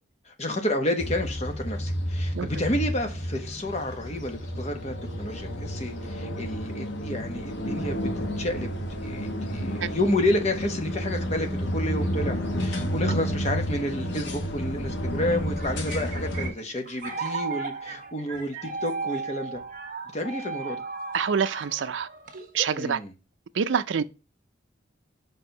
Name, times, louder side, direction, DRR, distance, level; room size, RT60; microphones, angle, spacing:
voice 1, 0.3-8.7 9.0-19.6 20.1-20.8 22.7-23.1, left 1 dB, 35° left, 1.1 m, -30 dB
sound 1, 1.0-16.5, equal, 70° left, 1.1 m, -31 dB
sound 2, 15.3-22.9, right 4 dB, 45° right, 1.3 m, -35 dB
voice 2, 21.1-22.1 22.5-23.0 23.5-24.0, right 7 dB, 75° right, 0.4 m, -26 dB
5.4 x 4.5 x 5.2 m
head